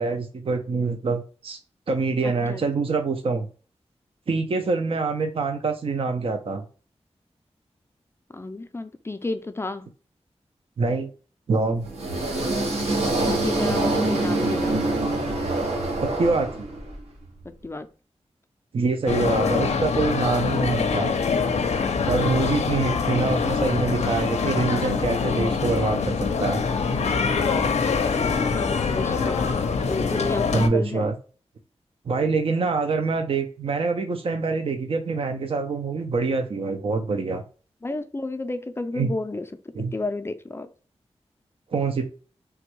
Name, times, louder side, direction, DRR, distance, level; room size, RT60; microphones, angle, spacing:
voice 1, 0.0-1.6 1.9-3.5 4.3-6.6 10.8-11.1 11.5-11.9 16.0-16.7 18.7-21.1 22.1-26.6 30.5-31.2 32.1-37.4 39.0-39.1 39.8-39.9 41.7-42.1, right 4 dB, 55° right, 6 dB, 0.4 m, -25 dB
voice 2, 2.2-2.6 8.3-9.9 13.3-14.8 17.6-17.9 28.6-29.5 29.9-31.1 37.8-39.5 39.9-40.7, left 2 dB, 20° left, 9 dB, 0.4 m, -31 dB
sound 1, 11.8-17.0, right 2 dB, 80° right, 0.9 m, -25 dB
sound 2, 19.1-30.7, left 5 dB, 85° left, 0.4 m, -24 dB
3.3 x 2.2 x 2.9 m, 0.38 s
wide cardioid pair, 95°, 11 cm